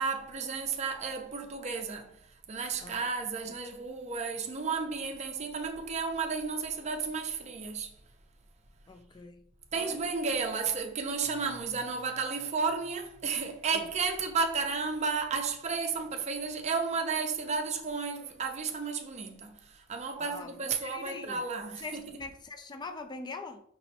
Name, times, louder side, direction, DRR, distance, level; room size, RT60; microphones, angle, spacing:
voice 1, 0.0-2.2 2.5-7.9 9.7-22.0, right 5 dB, 35° right, 0.5 m, -33 dB
voice 2, 2.8-3.1 3.4-3.5 8.9-9.5 9.7-10.0 13.7-13.9 20.2-21.4 21.8-23.6, left 3 dB, 20° left, 0.4 m, -43 dB
5.3 x 3.0 x 2.8 m
head